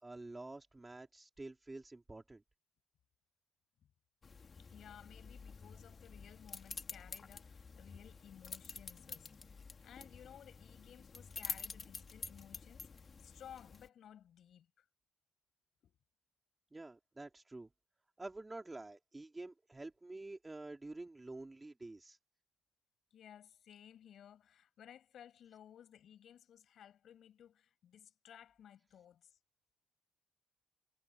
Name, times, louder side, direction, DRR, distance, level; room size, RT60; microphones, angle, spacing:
voice 1, 0.0-2.4 16.7-17.7 18.2-22.2, right 2 dB, 20° right, 3.5 m, -48 dB
sound 1, 4.2-13.9, left 5 dB, 40° left, 2.6 m, -49 dB
voice 2, 4.6-12.9 13.2-14.8 15.8-16.0 23.1-29.4, left 9 dB, 65° left, 6.6 m, -58 dB
supercardioid pair, 55°, 0 cm